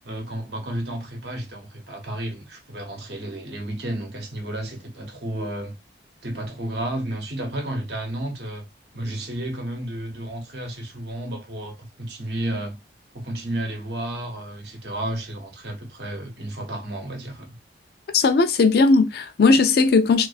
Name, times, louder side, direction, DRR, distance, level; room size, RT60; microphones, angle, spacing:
voice 1, 0.0-5.7 6.2-8.7 8.9-12.8 13.1-17.6, right 1 dB, 65° right, 0.8 m, -32 dB
voice 2, 18.1-20.3, left 4 dB, 60° left, 0.4 m, -17 dB
2.4 x 2.3 x 2.3 m
head